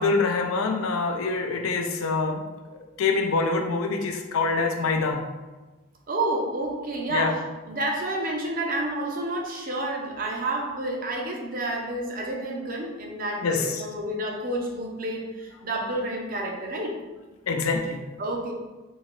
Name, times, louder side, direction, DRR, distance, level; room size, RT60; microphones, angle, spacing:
voice 1, 0.0-5.2 7.1-7.4 13.4-13.9 17.5-18.0, left 4 dB, 85° left, 5 dB, 0.4 m, -25 dB
voice 2, 6.1-7.4 7.7-16.9 18.2-18.5, right 1 dB, 40° right, 0 dB, 0.6 m, -29 dB
3.6 x 2.8 x 3.1 m, 1.2 s
head